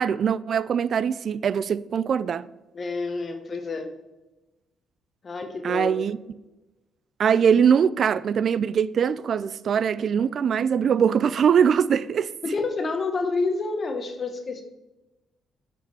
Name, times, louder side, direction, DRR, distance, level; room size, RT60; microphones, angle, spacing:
voice 1, 0.0-2.5 5.6-6.2 7.2-12.3, right 7 dB, 55° right, 0.3 m, -22 dB
voice 2, 2.7-3.9 5.2-6.1 12.4-14.6, left 3 dB, 40° left, 1.0 m, -28 dB
7.9 x 5.0 x 6.8 m
cardioid pair, 90°, 0 cm